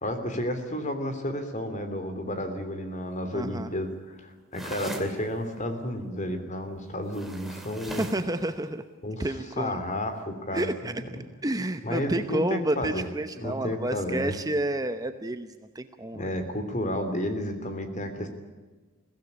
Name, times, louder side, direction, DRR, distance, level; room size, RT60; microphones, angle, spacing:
voice 1, 0.0-8.0 9.0-9.3 9.6-11.2 11.8-13.1 13.4-14.3 16.1-18.3, left 1 dB, 35° left, 8 dB, 3.1 m, -32 dB
voice 2, 3.3-3.7 7.9-8.8 9.2-9.8 10.5-10.9 11.4-16.3, right 1 dB, 15° right, 9 dB, 0.8 m, -30 dB
sound 1, 4.5-5.1 7.1-8.3, right 1 dB, ahead, 2.7 m, -39 dB
23.0 x 16.5 x 9.8 m, 1.3 s
head